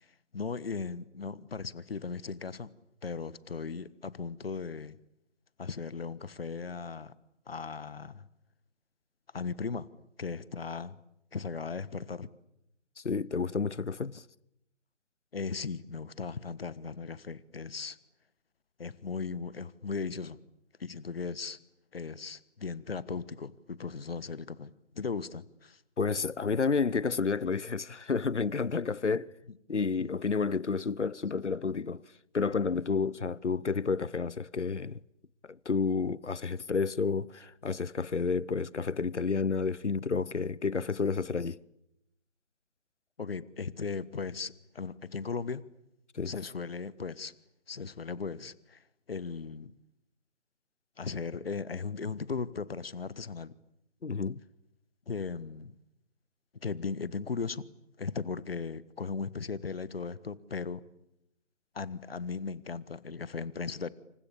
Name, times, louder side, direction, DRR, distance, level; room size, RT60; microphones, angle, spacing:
voice 1, 0.3-2.7 3.0-5.0 5.6-7.1 7.5-8.3 9.3-9.9 10.2-11.0 11.3-12.3 15.3-18.0 18.8-20.4 20.8-21.6 21.9-25.8 40.4-40.5 43.2-45.6 46.2-47.3 47.7-48.8 49.1-49.7 51.0-53.5 55.1-55.7 56.6-57.7 58.0-60.8 61.7-63.9, left 5 dB, 55° left, 1.4 m, -37 dB
voice 2, 13.0-14.2 26.0-29.3 29.7-32.0 32.3-35.0 35.5-41.6 46.1-46.3 54.0-54.4, left 5 dB, 80° left, 1.0 m, -30 dB
28.5 x 28.0 x 7.1 m
figure-of-eight pair, 150°, 35 cm